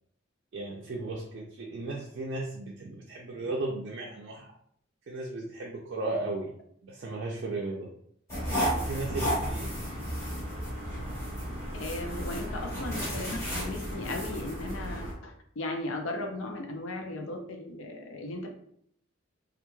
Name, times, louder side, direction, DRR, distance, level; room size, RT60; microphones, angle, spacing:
voice 1, 0.5-4.5 5.1-6.5 6.8-7.9 8.7-9.7, right 2 dB, 60° right, -3 dB, 0.4 m, -35 dB
sound 1, 8.3-15.1, equal, 15° left, 1.2 m, -33 dB
voice 2, 11.7-18.6, left 2 dB, 85° left, 4 dB, 0.5 m, -36 dB
3.0 x 2.3 x 2.2 m, 0.67 s
head